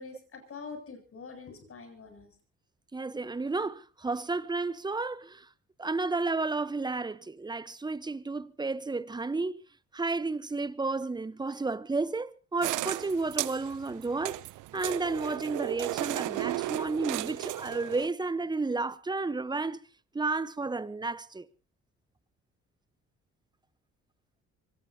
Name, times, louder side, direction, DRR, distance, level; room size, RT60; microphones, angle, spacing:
voice 1, 0.0-2.3, left 4 dB, 50° left, 7.8 m, -45 dB
voice 2, 2.9-5.5 5.8-9.6 9.9-14.4 14.7-19.9 20.1-21.5, right 3 dB, 15° right, 0.9 m, -32 dB
sound 1, 12.6-18.1, right 17 dB, 85° right, 0.7 m, -34 dB
24.5 x 19.0 x 2.8 m
cardioid pair, 90°, 30 cm